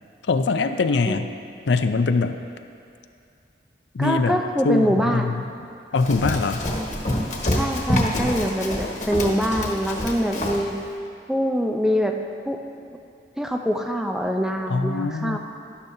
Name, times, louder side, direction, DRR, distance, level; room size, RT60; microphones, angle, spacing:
voice 1, 0.2-1.3 1.7-2.4 3.9-4.4 4.6-5.4 5.9-6.7 14.7-15.4, left 4 dB, 80° left, 8 dB, 0.5 m, -22 dB
voice 2, 4.0-5.3 7.5-10.7 11.3-12.2 12.5-12.6 13.4-15.4, equal, 5° right, 3 dB, 0.5 m, -24 dB
Run, 6.0-10.7, left 1 dB, 40° left, 1.3 m, -26 dB
12.0 x 12.0 x 2.7 m, 2.5 s
head